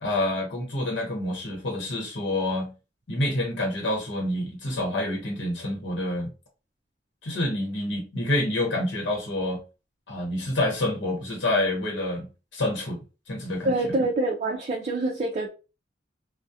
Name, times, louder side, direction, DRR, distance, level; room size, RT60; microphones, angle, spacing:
voice 1, 0.0-2.7 3.1-6.3 7.2-9.6 10.1-13.0 13.3-13.9, left 1 dB, 75° left, 0.9 m, -28 dB
voice 2, 13.6-15.5, right 2 dB, 40° right, 0.4 m, -26 dB
2.3 x 2.0 x 2.6 m
head